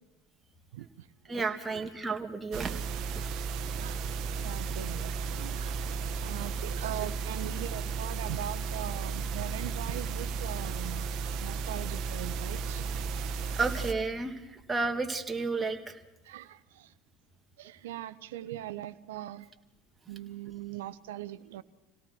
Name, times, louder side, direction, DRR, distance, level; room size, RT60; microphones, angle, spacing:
voice 1, 0.7-1.4 3.8-4.1 4.4-5.8 6.2-11.1 11.4-12.8 16.2-16.9 17.6-19.5 20.1-21.6, right 13 dB, 75° right, 15 dB, 0.9 m, -40 dB
voice 2, 1.3-2.8 13.5-16.0, right 4 dB, 15° right, 4 dB, 2.4 m, -32 dB
sound 1, 2.5-13.9, right 5 dB, 50° right, 1.4 m, -34 dB
26.5 x 17.5 x 6.2 m, 1.0 s
hypercardioid pair, 80°, 0 cm